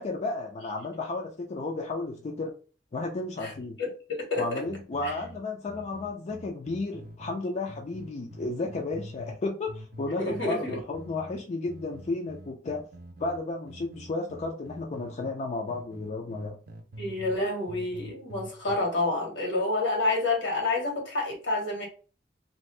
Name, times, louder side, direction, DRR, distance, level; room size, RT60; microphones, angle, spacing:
voice 1, 0.0-2.5 2.9-3.8 4.4-12.8 13.2-16.6, left 3 dB, 35° left, 0.4 m, -33 dB
voice 2, 3.8-4.6 5.0-5.2 10.2-10.8 17.0-21.9, left 2 dB, 85° left, 1.4 m, -29 dB
sound 1, 4.6-7.4 7.7-9.4 9.7-15.4 15.7-17.4 17.7-18.8, right 1 dB, 55° right, 0.6 m, -45 dB
2.6 x 2.5 x 3.2 m
head